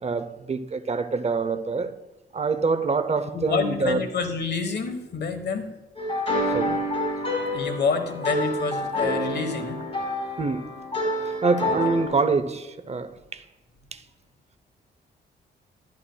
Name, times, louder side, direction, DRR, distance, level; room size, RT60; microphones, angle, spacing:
voice 1, 0.0-1.9 2.3-4.0 6.5-6.8 10.4-10.7 11.2-13.4 13.9-14.0, right 4 dB, 35° right, 0.6 m, -26 dB
voice 2, 3.3-5.7 7.5-9.8, left 5 dB, 60° left, 1.2 m, -27 dB
sound 1, 6.0-12.1, left 1 dB, 30° left, 3.8 m, -28 dB
13.0 x 10.5 x 2.2 m
cardioid pair, 95°, 19 cm